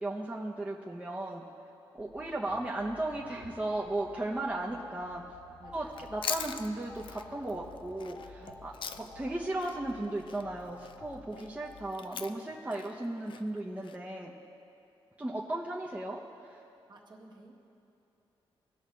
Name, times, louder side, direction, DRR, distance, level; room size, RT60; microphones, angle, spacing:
voice 1, 0.0-1.4 1.9-5.2 5.7-8.4 9.0-14.3 15.2-16.2 16.5-16.6, right 2 dB, 15° right, -3 dB, 0.8 m, -35 dB
sound 1, 2.0-11.9, left 3 dB, 40° left, 1.0 m, -52 dB
voice 2, 5.6-6.1 8.4-8.5 8.8-9.0 16.7-17.5, right 2 dB, 50° right, -2 dB, 1.6 m, -55 dB
Chewing mastication, 5.9-9.3 9.6-14.0, left 6 dB, 60° left, 0.4 m, -41 dB
18.5 x 6.5 x 3.2 m, 2.8 s
cardioid pair, 85°, 10 cm